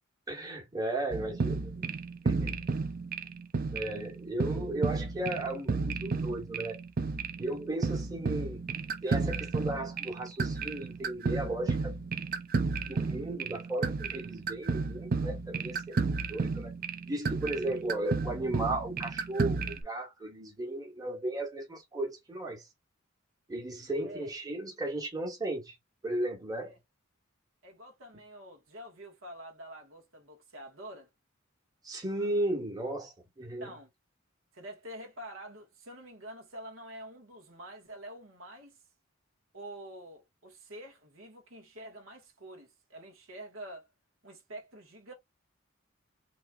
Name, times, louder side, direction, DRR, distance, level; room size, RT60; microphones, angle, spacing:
voice 1, 0.3-1.9 2.2-2.6 3.7-6.8 7.4-8.6 9.0-11.9 12.8-16.7 17.1-22.7 23.5-25.7 26.0-26.7 31.8-33.8, right 1 dB, 20° right, 1.4 m, -35 dB
sound 1, 1.1-19.8, right 4 dB, 45° right, 0.5 m, -33 dB
voice 2, 27.6-31.1 33.6-33.9 34.5-38.8 39.5-43.9 44.2-45.1, right 1 dB, 80° right, 1.5 m, -47 dB
4.2 x 3.0 x 2.4 m
head